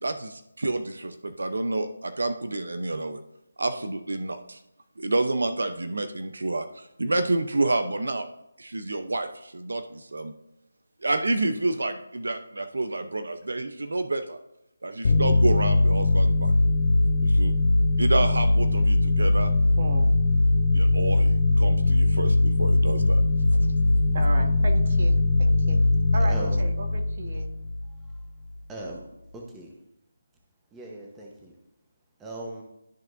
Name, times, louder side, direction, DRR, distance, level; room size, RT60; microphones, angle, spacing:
voice 1, 0.0-3.2 3.6-4.6 5.0-8.3 8.6-10.3 11.0-14.4 14.8-16.5 17.2-17.5 18.0-19.5 20.7-23.2, right 2 dB, 75° right, 9 dB, 0.6 m, -29 dB
sound 1, 15.0-28.2, left 2 dB, 50° left, 0.7 m, -21 dB
voice 2, 19.8-20.1 24.1-25.8 26.1-27.5, right 2 dB, 45° right, 3 dB, 1.4 m, -35 dB
voice 3, 26.3-26.7 28.7-29.0 29.3-29.7 30.7-31.5 32.2-32.6, right 2 dB, 10° right, -1 dB, 1.0 m, -38 dB
13.0 x 4.5 x 2.6 m, 0.87 s
figure-of-eight pair, 165°, 0 cm